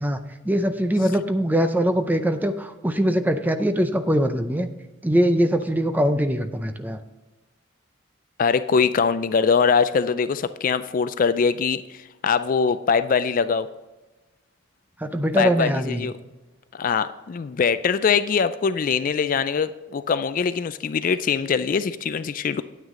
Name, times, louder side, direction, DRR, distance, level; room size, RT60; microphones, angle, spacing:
voice 1, 0.4-4.7 5.0-7.0 15.0-16.1, equal, 10° right, 8 dB, 0.5 m, -22 dB
voice 2, 8.4-13.7 15.4-16.1 16.7-22.6, left 6 dB, 40° left, 13 dB, 0.3 m, -22 dB
9.3 x 9.0 x 3.8 m, 1.1 s
head